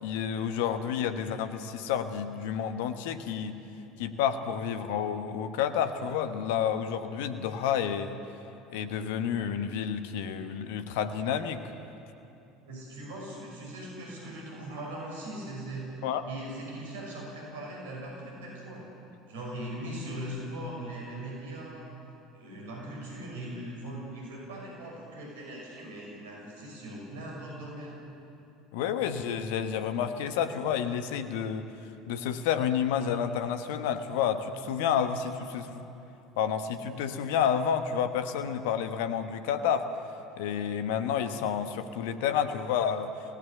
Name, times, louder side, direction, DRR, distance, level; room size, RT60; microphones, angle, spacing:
voice 1, 0.0-3.6 4.0-8.2 8.7-11.7 16.0-16.2 28.7-31.7 32.1-35.8 36.4-39.9 40.3-43.1, left 8 dB, 65° left, 9 dB, 1.2 m, -30 dB
voice 2, 12.7-15.8 16.3-18.9 19.3-21.9 22.3-27.9, right 1 dB, 70° right, -2 dB, 5.9 m, -40 dB
25.5 x 18.0 x 6.8 m, 2.8 s
figure-of-eight pair, 65°, 0 cm